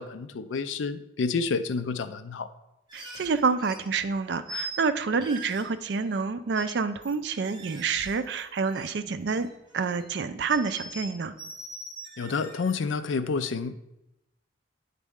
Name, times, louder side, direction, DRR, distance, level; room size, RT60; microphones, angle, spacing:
voice 1, 0.0-2.5 12.2-13.7, left 4 dB, 75° left, 11 dB, 0.4 m, -29 dB
sound 1, 2.9-3.9 4.5-4.8 5.2-6.2 6.5-6.7 7.0-8.9 9.2-10.1 10.5-12.7, right 1 dB, 20° right, 0.9 m, -42 dB
voice 2, 2.9-9.5 9.7-11.3, right 5 dB, 55° right, 11 dB, 0.4 m, -28 dB
9.0 x 4.1 x 3.6 m, 0.91 s
head